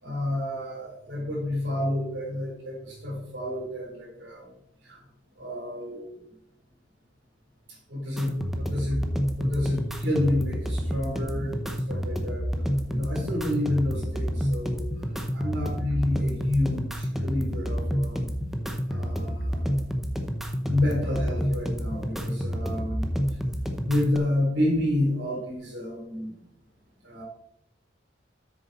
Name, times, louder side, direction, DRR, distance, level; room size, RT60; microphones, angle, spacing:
voice 1, 0.0-4.5 4.8-5.0 5.4-6.1 7.9-9.0 9.4-11.5 11.9-12.4 12.9-14.8 15.3-18.3 18.9-19.6 20.7-23.1 23.8-26.3 27.0-27.2, left 1 dB, 70° right, -2 dB, 3.9 m, -29 dB
sound 1, 8.2-24.2, equal, ahead, 0.7 m, -29 dB
8.4 x 6.5 x 4.1 m, 0.76 s
head